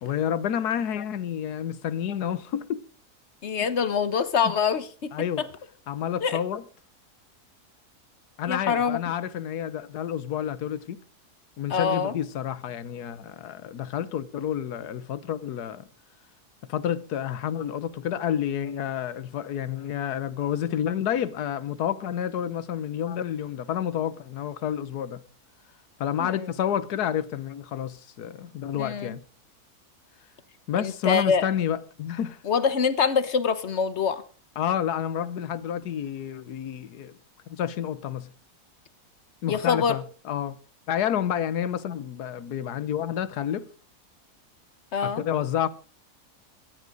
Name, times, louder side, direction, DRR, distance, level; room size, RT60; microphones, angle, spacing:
voice 1, 0.0-2.8 4.4-4.5 5.1-5.5 5.9-6.6 8.4-11.0 11.6-15.9 16.7-25.2 26.0-29.2 30.7-32.4 34.6-37.1 37.5-38.3 39.4-40.6 40.9-43.7 45.0-45.7, left 9 dB, 80° left, 1.5 m, -29 dB
voice 2, 3.4-5.1 6.2-6.4 8.5-9.0 11.7-12.1 26.2-26.5 28.8-29.2 30.8-31.5 32.4-34.2 39.5-39.9 44.9-45.2, left 6 dB, 45° left, 1.3 m, -25 dB
17.0 x 14.5 x 3.9 m
omnidirectional pair, 1.7 m